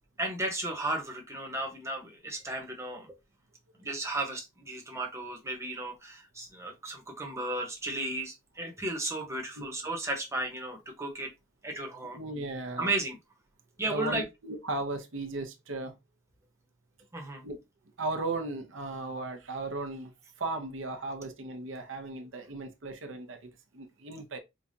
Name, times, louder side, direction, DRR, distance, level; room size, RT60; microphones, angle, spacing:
voice 1, 0.2-3.1 3.8-11.3 11.6-12.2 12.8-13.2 13.8-14.2 17.1-17.4, right 2 dB, 15° right, 0.9 m, -34 dB
voice 2, 12.1-12.9 13.9-15.9 17.4-17.6 18.0-20.1 20.4-24.4, right 2 dB, 80° right, 0.8 m, -36 dB
5.0 x 2.3 x 2.7 m
head